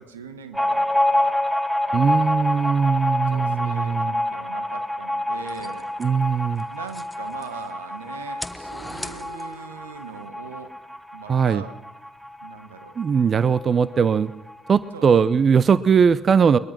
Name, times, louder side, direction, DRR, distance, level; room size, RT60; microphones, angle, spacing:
voice 1, 0.0-1.4 1.9-2.8 3.3-5.9 6.7-10.7 11.1-11.8 12.4-13.0 14.9-15.1, right 6 dB, 85° right, 11 dB, 1.4 m, -41 dB
sound 1, 0.5-13.7 13.9-14.0 14.3-15.1, left 1 dB, 15° right, 3.1 m, -27 dB
voice 2, 1.9-4.1 6.0-6.6 11.3-11.6 13.0-14.3 14.7-16.6, right 6 dB, 40° right, 18 dB, 0.7 m, -19 dB
sound 2, 5.4-7.7 8.2-9.8, left 1 dB, 10° left, 1.5 m, -39 dB
22.0 x 20.5 x 6.0 m, 1.0 s
figure-of-eight pair, 50°, 0 cm